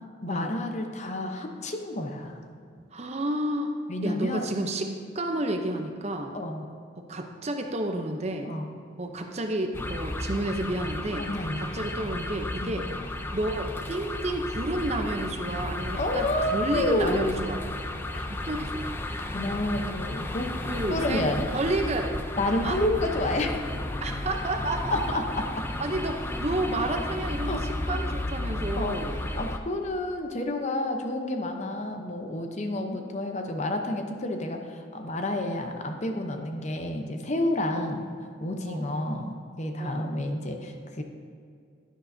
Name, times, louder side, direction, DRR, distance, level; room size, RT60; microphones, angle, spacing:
voice 1, 0.2-2.5 3.9-4.5 6.3-6.7 8.4-8.7 11.3-11.6 12.6-12.8 16.0-17.3 18.1-18.2 19.3-20.5 20.9-21.5 22.4-23.6 24.9-25.2 27.4-28.0 28.8-29.0 29.4-38.1 38.4-41.0, left 1 dB, 35° left, 4 dB, 0.7 m, -30 dB
voice 2, 2.9-3.7 4.0-6.3 7.0-8.5 9.0-11.3 11.6-12.9 13.3-17.6 18.3-18.9 20.7-21.2 21.5-22.1 22.6-22.8 24.0-25.2 25.8-27.6 27.9-29.2 37.7-38.0 38.7-38.9 39.8-40.1, right 1 dB, 35° right, 4 dB, 0.6 m, -31 dB
sound 1, 9.7-29.6, left 1 dB, 10° left, 0.4 m, -33 dB
11.0 x 10.0 x 2.7 m, 2.4 s
head